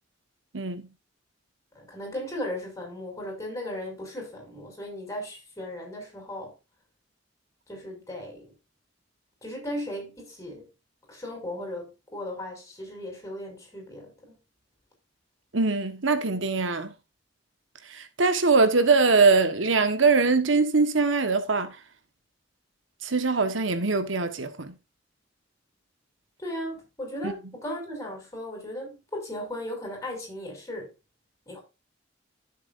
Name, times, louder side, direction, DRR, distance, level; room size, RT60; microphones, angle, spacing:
voice 1, 1.7-6.5 7.7-8.5 9.4-10.7 11.1-14.3 26.4-30.9 31.5-31.6, left 1 dB, 15° left, 6.2 m, -36 dB
voice 2, 15.5-16.9 17.9-21.8 23.0-24.7 27.2-27.3, right 4 dB, 85° right, 1.4 m, -22 dB
14.0 x 7.4 x 2.6 m
head